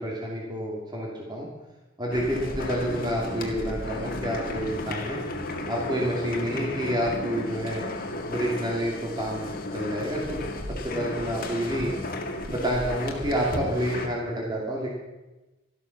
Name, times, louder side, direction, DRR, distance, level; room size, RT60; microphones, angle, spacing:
voice 1, 0.0-1.5 2.0-5.2 5.7-7.8 8.3-10.5 10.8-11.9 12.5-14.9, equal, 20° right, -3 dB, 2.6 m, -29 dB
sound 1, 2.1-14.1, left 2 dB, 45° left, 1.9 m, -34 dB
13.5 x 12.5 x 5.9 m, 1.1 s
head